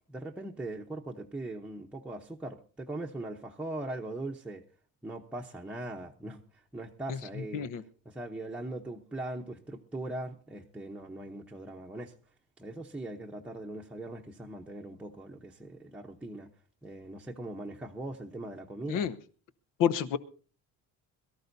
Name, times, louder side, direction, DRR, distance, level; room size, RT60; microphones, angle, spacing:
voice 1, 0.1-4.6 5.0-6.4 6.7-7.7 8.0-12.1 12.6-16.5 16.8-19.1, right 2 dB, 5° right, 0.8 m, -40 dB
voice 2, 7.1-7.8 18.9-19.2 19.8-20.2, left 8 dB, 65° left, 1.0 m, -29 dB
22.5 x 13.5 x 2.7 m
cardioid pair, 140°, 34 cm